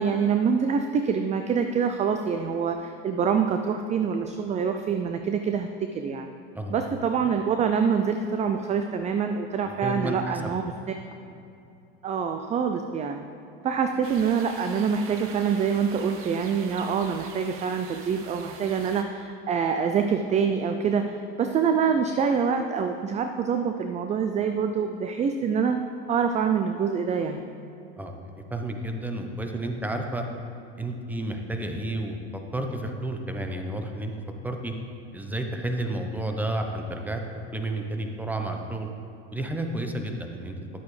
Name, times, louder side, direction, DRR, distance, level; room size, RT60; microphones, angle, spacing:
voice 1, 0.0-6.3 6.7-10.6 12.0-13.2 13.6-25.8 26.1-27.4, right 6 dB, 25° right, 6 dB, 0.4 m, -25 dB
voice 2, 9.6-10.4 28.0-30.2 30.8-32.2 32.5-34.1 34.4-34.7 35.1-37.2 37.5-38.9 39.3-40.5, right 1 dB, 5° right, 4 dB, 0.8 m, -31 dB
sound 1, 14.0-19.0, right 5 dB, 45° right, 0.9 m, -44 dB
11.0 x 8.1 x 3.3 m, 2.6 s
supercardioid pair, 110°, 29 cm